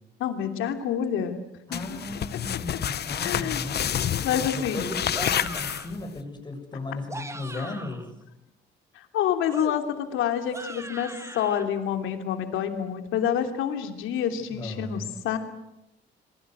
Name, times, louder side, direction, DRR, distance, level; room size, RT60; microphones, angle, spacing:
voice 1, 0.2-1.4 1.7-2.0 2.3-2.8 3.2-3.6 4.2-5.0 7.6-7.8 8.9-15.4, left 9 dB, 90° left, 6 dB, 3.0 m, -28 dB
sound 1, 1.7-6.2, left 9 dB, 55° left, 1.0 m, -29 dB
voice 2, 1.7-4.0 4.5-8.1 14.5-15.1, left 2 dB, 20° left, 4 dB, 7.4 m, -36 dB
sound 2, 5.1-6.0 6.9-8.1 9.5-11.6, right 2 dB, 15° right, 2.3 m, -40 dB
27.5 x 22.0 x 8.1 m, 0.90 s
cardioid pair, 90°, 20 cm